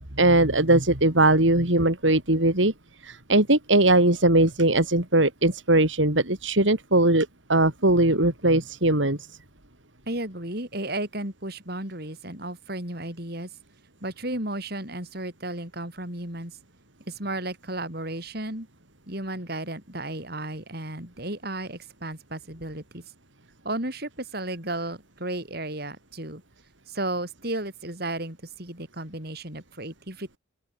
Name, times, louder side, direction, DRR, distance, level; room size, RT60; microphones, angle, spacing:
voice 1, 0.2-2.7 3.0-9.2, right 2 dB, 75° right, 4.4 m, -20 dB
voice 2, 10.1-13.5 14.0-16.5 17.1-18.7 19.1-23.0 23.6-26.4 26.9-30.4, right 1 dB, 55° right, 7.4 m, -33 dB
open air
head